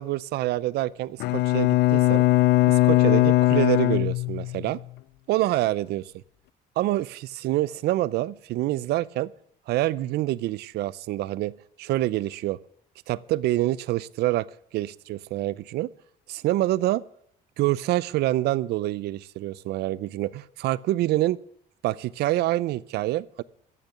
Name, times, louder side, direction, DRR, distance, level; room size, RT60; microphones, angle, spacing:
voice 1, 0.0-2.2 2.7-4.8 5.3-6.0 6.8-9.3 9.7-11.5 11.8-12.6 13.1-14.5 14.7-15.9 16.3-17.0 17.6-21.4 21.8-23.4, right 16 dB, 75° right, 20 dB, 0.6 m, -26 dB
Bowed string instrument, 1.2-4.8, left 18 dB, 80° left, 0.5 m, -20 dB
14.5 x 6.8 x 9.9 m, 0.70 s
cardioid pair, 110°, 17 cm